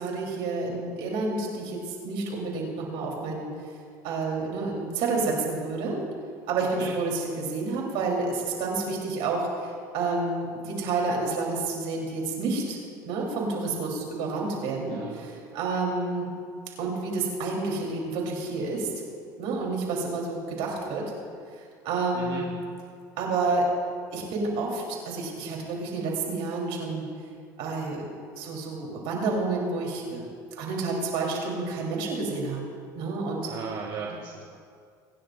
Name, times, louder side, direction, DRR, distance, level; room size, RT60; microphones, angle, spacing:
voice 1, 0.0-1.8 2.0-3.5 4.0-6.0 6.5-12.8 13.1-16.3 16.8-18.9 19.4-21.0 21.5-22.6 23.2-23.7 24.1-27.1 27.6-28.1 28.4-30.3 30.6-32.6 32.9-33.4, right 3 dB, 70° right, -1 dB, 3.6 m, -29 dB
voice 2, 14.9-15.3 22.1-22.4 33.4-34.4, right 6 dB, 50° right, -2 dB, 1.5 m, -37 dB
22.5 x 10.0 x 2.6 m, 2.2 s
supercardioid pair, 90°, 10 cm